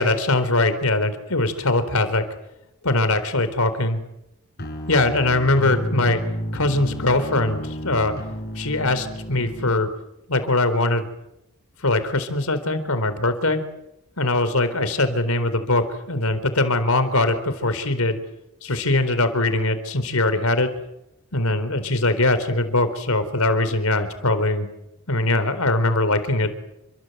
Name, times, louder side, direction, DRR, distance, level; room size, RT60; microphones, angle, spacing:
voice 1, 0.0-2.2 2.8-4.0 4.9-6.2 6.5-8.1 8.6-9.9 10.3-11.1 11.8-13.6 14.2-18.2 18.6-20.7 21.3-24.7 25.1-26.5, left 2 dB, 80° left, 11 dB, 4.1 m, -21 dB
sound 1, 4.6-9.7, equal, 50° left, 5.7 m, -31 dB
29.5 x 25.0 x 8.0 m, 0.83 s
head